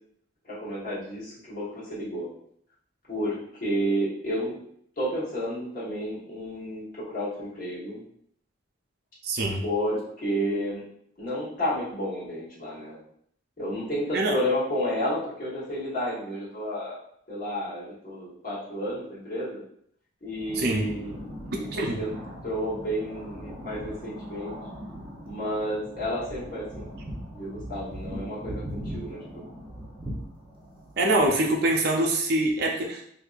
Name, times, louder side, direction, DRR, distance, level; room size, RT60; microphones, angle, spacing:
voice 1, 0.4-2.3 3.1-4.6 5.0-8.0 9.6-10.8 11.2-13.0 13.6-17.0 17.3-19.6 20.2-21.1 21.5-22.1 22.4-24.6 25.2-26.9 27.3-29.2, equal, 45° left, -7 dB, 1.3 m, -31 dB
voice 2, 9.2-9.6 14.1-14.3 20.6-20.9 21.7-22.0 31.0-33.0, right 2 dB, 50° right, 1 dB, 0.5 m, -24 dB
sound 1, 20.3-31.3, equal, 25° right, 0.8 m, -40 dB
4.3 x 2.7 x 2.4 m, 0.67 s
head